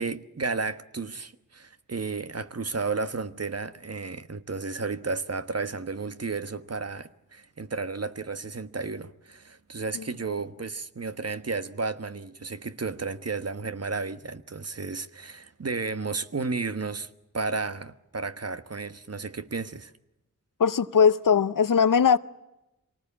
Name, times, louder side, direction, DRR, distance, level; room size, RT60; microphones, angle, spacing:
voice 1, 0.0-19.9, right 4 dB, 50° right, 1.3 m, -33 dB
voice 2, 20.6-22.2, left 6 dB, 90° left, 0.8 m, -20 dB
25.0 x 19.0 x 8.6 m
wide cardioid pair, 55°, 32 cm